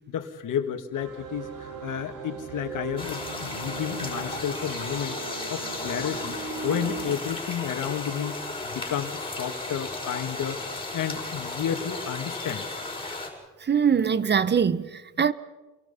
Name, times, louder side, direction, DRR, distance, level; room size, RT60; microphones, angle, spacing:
voice 1, 0.1-5.2 5.5-6.4 6.6-8.4 8.6-10.6 10.9-12.6, left 9 dB, 80° left, 2.3 m, -31 dB
sound 1, 0.9-7.1, right 4 dB, 90° right, 3.0 m, -38 dB
sound 2, 3.0-13.3, left 2 dB, 15° left, 5.9 m, -35 dB
voice 2, 13.6-15.3, right 7 dB, 35° right, 0.8 m, -23 dB
30.0 x 23.5 x 5.8 m
cardioid pair, 120°, 31 cm